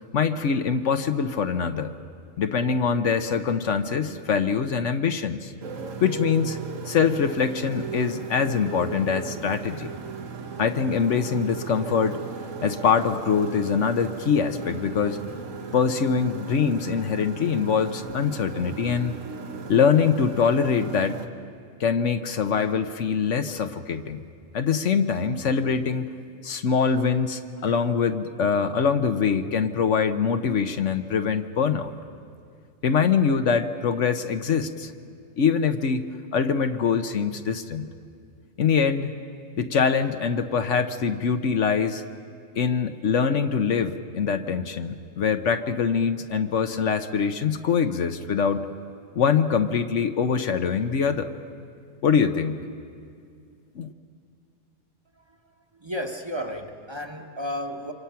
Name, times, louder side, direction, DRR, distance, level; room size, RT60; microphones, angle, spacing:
voice 1, 0.1-1.9 2.4-5.5 6.0-6.6 6.9-9.9 10.6-12.2 12.6-15.2 15.7-19.1 19.7-21.2 21.8-24.2 24.5-26.1 26.4-31.9 32.8-34.9 35.4-36.0 36.3-37.9 38.6-39.1 39.6-42.0 42.6-48.6 49.1-51.3 52.0-52.6 53.8-53.9, left 6 dB, 70° left, 8 dB, 1.2 m, -23 dB
Motorcycle, 5.6-21.3, right 6 dB, 90° right, 1.6 m, -37 dB
voice 2, 55.1-57.9, equal, 20° right, 4 dB, 1.3 m, -33 dB
28.0 x 25.0 x 5.8 m, 2.3 s
omnidirectional pair, 1.3 m